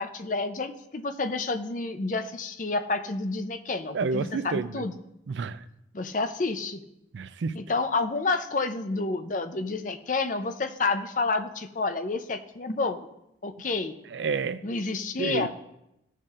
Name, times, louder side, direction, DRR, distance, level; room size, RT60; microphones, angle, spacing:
voice 1, 0.0-5.0 5.9-6.8 7.5-13.1 13.4-14.0 14.6-15.5, left 3 dB, 45° left, 7 dB, 0.6 m, -29 dB
voice 2, 3.9-4.8 5.3-5.6 7.1-7.5 14.1-14.6 15.2-15.5, right 4 dB, 80° right, 13 dB, 0.4 m, -29 dB
16.0 x 6.5 x 2.5 m, 0.85 s
head